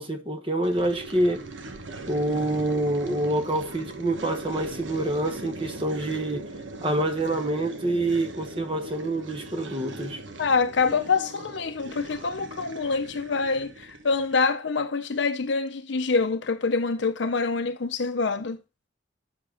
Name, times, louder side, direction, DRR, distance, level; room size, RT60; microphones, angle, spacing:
voice 1, 0.0-1.4 2.1-6.4 6.8-10.2, right 1 dB, 25° right, 1.1 m, -26 dB
sound 1, 0.6-14.5, right 2 dB, 80° right, 1.2 m, -40 dB
voice 2, 10.4-18.6, left 4 dB, 70° left, 0.6 m, -26 dB
7.7 x 6.0 x 4.9 m
head